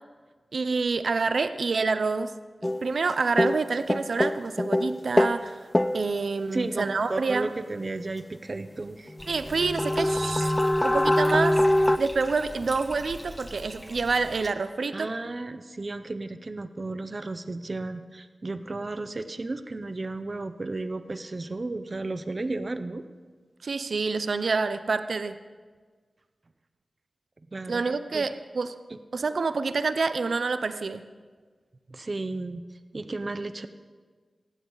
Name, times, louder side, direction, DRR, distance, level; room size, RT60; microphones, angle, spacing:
voice 1, 0.5-2.3 2.8-5.6 5.9-7.5 9.3-10.5 10.8-11.6 12.0-15.1 23.6-25.3 27.7-28.8 29.1-31.0, right 4 dB, 80° right, 11 dB, 0.6 m, -27 dB
sound 1, 2.6-3.1 3.4-5.4 5.7-6.1 9.1-9.2 9.4-12.0, left 1 dB, 20° left, 0.5 m, -23 dB
voice 2, 6.5-9.1 14.9-23.0 27.5-27.8 28.1-28.3 31.9-32.6 32.9-33.7, right 2 dB, 45° right, 11 dB, 0.7 m, -33 dB
Bathtub (filling or washing), 9.2-14.5, equal, ahead, 1.2 m, -43 dB
18.0 x 15.0 x 4.0 m, 1.5 s
wide cardioid pair, 85°, 0 cm